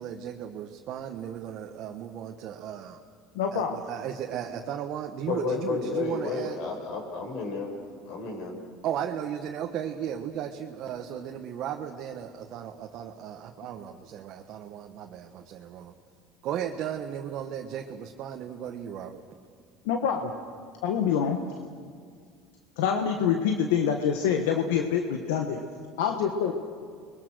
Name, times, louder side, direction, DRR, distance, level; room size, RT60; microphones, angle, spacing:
voice 1, 0.0-3.0 3.5-6.6 8.8-15.9 16.4-19.2, right 9 dB, 55° right, 3 dB, 1.4 m, -35 dB
voice 2, 3.3-3.8 19.8-20.3 20.8-21.4 22.8-25.6 26.0-26.5, left 7 dB, 85° left, 4 dB, 1.5 m, -26 dB
voice 3, 5.3-7.7 8.1-8.5, left 4 dB, 65° left, 2 dB, 6.3 m, -31 dB
30.0 x 22.0 x 6.4 m, 2.1 s
supercardioid pair, 105°, 0 cm